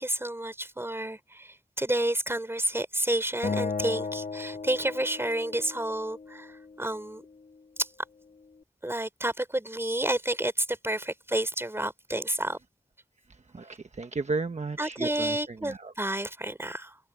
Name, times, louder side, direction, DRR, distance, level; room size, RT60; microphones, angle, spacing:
voice 1, 0.0-7.2 7.8-7.9 8.8-12.6 14.8-17.0, right 1 dB, 20° right, 4.0 m, -30 dB
Acoustic guitar, 3.4-6.7, left 4 dB, 85° left, 1.7 m, -35 dB
voice 2, 13.5-15.9, right 3 dB, 60° right, 1.2 m, -34 dB
wide cardioid pair, 80°, 13 cm